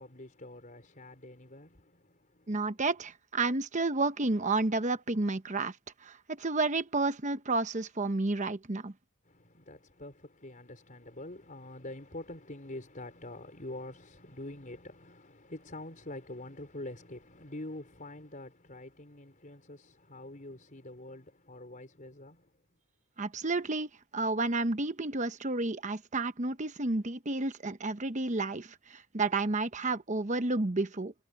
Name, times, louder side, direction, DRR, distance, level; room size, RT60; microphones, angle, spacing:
voice 1, 0.0-2.6 9.2-22.5, left 1 dB, 40° left, 4.7 m, -46 dB
voice 2, 2.5-5.8 6.0-8.9 23.2-31.1, right 3 dB, 35° right, 1.0 m, -31 dB
head